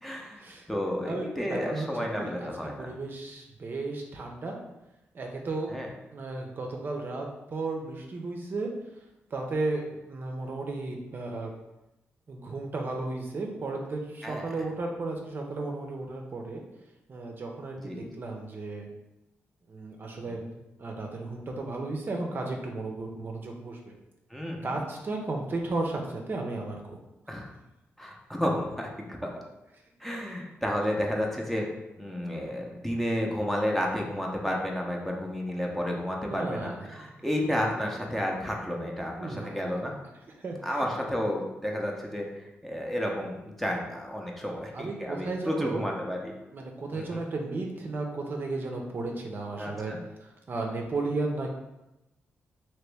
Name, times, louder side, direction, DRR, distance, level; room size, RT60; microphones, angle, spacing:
voice 1, 0.0-2.9 5.7-5.9 14.2-14.5 17.8-18.1 20.4-20.5 24.3-24.7 27.3-27.5 28.0-29.3 30.0-31.7 32.0-39.9 40.6-46.3 46.9-47.2 49.6-50.0, equal, 5° left, -1 dB, 0.6 m, -31 dB
voice 2, 1.1-1.9 2.1-2.5 2.8-4.6 5.1-5.7 6.1-8.7 9.3-11.5 12.3-16.6 17.1-18.9 19.7-20.4 20.8-23.9 24.6-27.0 36.2-37.1 39.2-39.6 40.4-40.9 44.7-45.8 46.5-49.9 50.2-51.6, right 3 dB, 50° right, 1 dB, 0.5 m, -34 dB
2.9 x 2.9 x 3.4 m, 0.96 s
cardioid pair, 85°, 5 cm